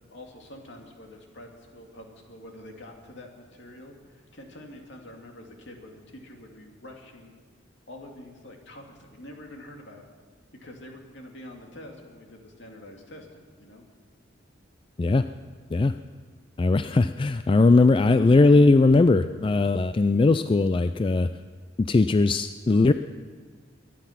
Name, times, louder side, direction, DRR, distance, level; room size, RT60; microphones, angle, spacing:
voice 1, 0.1-7.3 7.9-10.0 10.6-13.9, left 1 dB, 70° left, 2 dB, 2.4 m, -46 dB
voice 2, 16.6-21.3 21.8-22.9, left 3 dB, 25° left, 10 dB, 0.3 m, -19 dB
23.5 x 10.0 x 5.8 m, 1.5 s
head